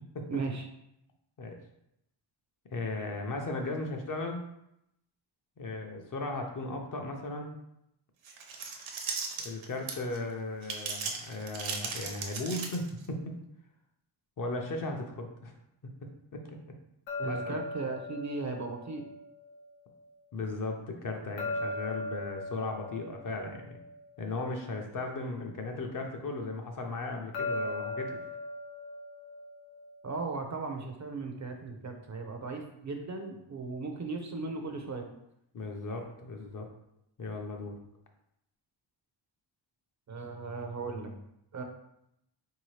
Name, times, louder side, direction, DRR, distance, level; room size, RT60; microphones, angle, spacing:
voice 1, 0.3-0.6 17.2-19.1 30.0-35.1 40.1-41.2 41.5-41.6, right 3 dB, 40° right, 4 dB, 0.4 m, -37 dB
voice 2, 2.7-4.4 5.6-7.6 9.4-13.3 14.4-15.5 16.3-16.6 17.2-17.6 20.3-23.8 24.2-28.2 35.5-36.7 37.2-37.8, left 2 dB, 45° left, 3 dB, 0.5 m, -36 dB
sound 1, 8.2-10.2 10.6-13.1, right 5 dB, 80° right, 0.7 m, -37 dB
sound 2, 17.1-20.1 21.4-24.9 27.3-30.4, left 2 dB, 90° left, 0.7 m, -39 dB
4.0 x 2.7 x 3.1 m, 0.80 s
wide cardioid pair, 150°, 47 cm